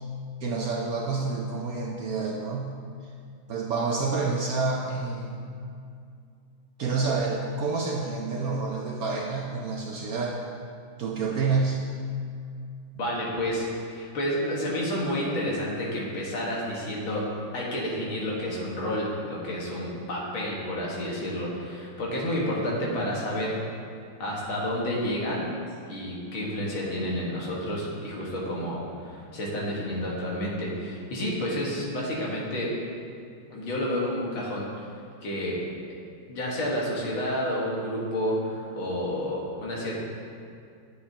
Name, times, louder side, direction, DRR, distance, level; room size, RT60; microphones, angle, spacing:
voice 1, 0.4-2.7 3.5-5.4 6.8-10.4 11.0-11.8, right 4 dB, 65° right, -1 dB, 0.9 m, -28 dB
voice 2, 13.0-17.3 17.5-23.6 24.2-25.5 25.9-32.7 33.5-34.9 35.2-35.6 36.3-40.0, equal, 85° left, -4 dB, 2.4 m, -30 dB
10.5 x 7.9 x 2.9 m, 2.4 s
omnidirectional pair, 2.1 m